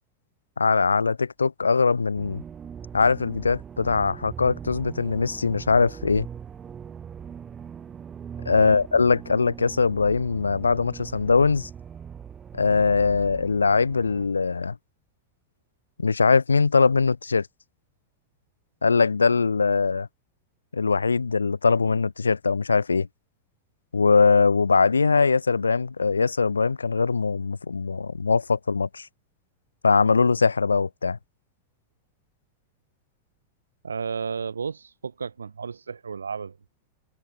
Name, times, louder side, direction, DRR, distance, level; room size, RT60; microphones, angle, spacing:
voice 1, 0.6-2.4 2.9-6.3 8.5-11.7 12.5-14.7 16.0-17.5 18.8-20.1 20.7-23.1 23.9-29.1 29.8-31.2, left 4 dB, 75° left, 0.9 m, -21 dB
sound 1, 2.2-14.3, right 8 dB, 20° right, 5.2 m, -40 dB
voice 2, 8.5-8.8 33.8-36.5, right 5 dB, 75° right, 1.6 m, -33 dB
figure-of-eight pair, 90°, 0 cm